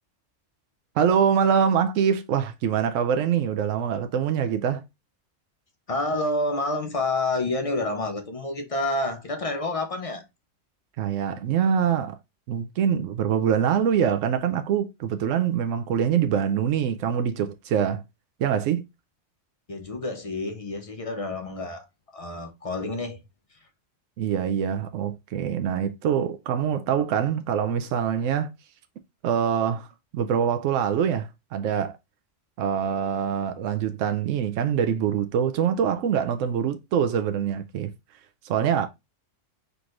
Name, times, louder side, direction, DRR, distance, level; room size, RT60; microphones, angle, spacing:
voice 1, 1.0-4.8 11.0-12.2 12.5-18.0 18.4-18.8 24.2-28.5 29.2-29.9 30.1-32.0 32.6-37.9 38.4-38.9, right 8 dB, 85° right, 0.9 m, -24 dB
voice 2, 5.9-10.2 19.7-21.8 22.1-23.2 23.5-23.6, left 2 dB, 35° left, 0.6 m, -28 dB
4.5 x 4.0 x 2.4 m
omnidirectional pair, 1.3 m